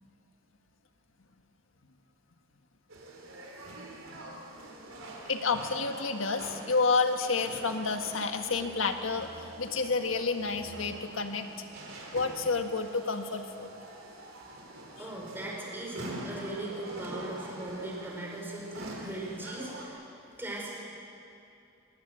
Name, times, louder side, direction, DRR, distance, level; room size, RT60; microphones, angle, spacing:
sound 1, 2.9-19.9, right 1 dB, 75° right, 4.6 m, -45 dB
voice 1, 5.2-11.5 12.1-13.7 15.0-15.1, left 4 dB, 70° left, 6 dB, 1.7 m, -30 dB
voice 2, 15.0-20.0 20.4-20.8, right 1 dB, 10° right, -3 dB, 5.2 m, -39 dB
23.5 x 20.5 x 7.6 m, 2.6 s
head